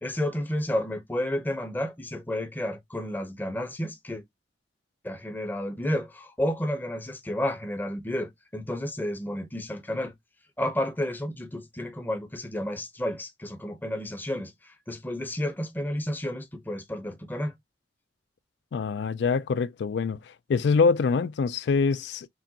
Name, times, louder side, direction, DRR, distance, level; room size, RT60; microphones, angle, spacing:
voice 1, 0.0-4.2 5.0-10.1 10.6-17.5, left 1 dB, 10° left, 0.7 m, -31 dB
voice 2, 18.7-20.2 20.5-22.3, left 5 dB, 65° left, 0.3 m, -24 dB
6.1 x 2.2 x 2.7 m
head